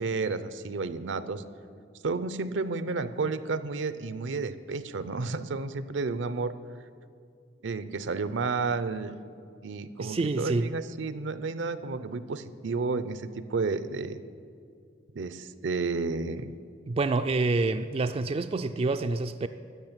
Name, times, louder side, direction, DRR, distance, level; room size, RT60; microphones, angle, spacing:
voice 1, 0.0-1.4 2.0-6.5 7.6-9.3 9.6-14.2 15.1-16.5, right 4 dB, 70° right, 14 dB, 0.6 m, -31 dB
voice 2, 10.0-10.7 16.9-19.5, right 3 dB, 30° right, 8 dB, 0.3 m, -27 dB
13.5 x 6.3 x 8.8 m, 2.4 s
head